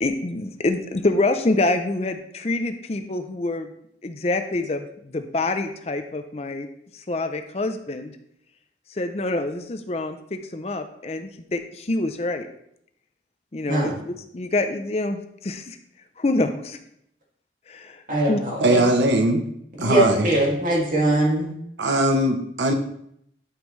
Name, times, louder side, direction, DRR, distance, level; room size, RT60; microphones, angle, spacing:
voice 1, 0.0-3.7 4.0-6.7 6.9-8.1 8.9-12.5 13.5-13.9 14.3-15.8 16.2-16.8 17.7-18.0 18.3-18.4, left 2 dB, 35° left, 8 dB, 0.5 m, -26 dB
voice 2, 18.1-18.8 19.8-21.5, right 1 dB, 45° right, -3 dB, 2.3 m, -21 dB
voice 3, 18.6-19.5 19.8-20.3 21.8-22.7, right 1 dB, 90° right, 5 dB, 0.9 m, -20 dB
11.5 x 5.2 x 3.2 m, 0.72 s
head